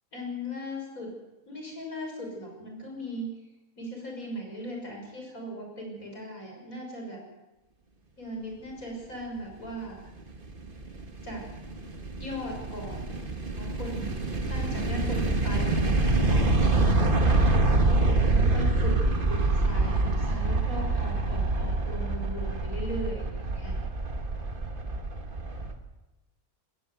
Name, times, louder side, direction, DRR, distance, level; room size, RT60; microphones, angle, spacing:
voice 1, 0.1-1.1 1.5-3.3 3.8-7.2 8.2-10.0 11.2-11.5 12.2-13.2 13.6-14.0 14.5-17.4 17.7-23.8, equal, 65° left, 1 dB, 6.6 m, -38 dB
sound 1, 10.2-25.7, right 2 dB, 35° right, 1.9 m, -26 dB
19.5 x 17.5 x 8.1 m, 1.0 s
omnidirectional pair, 1.6 m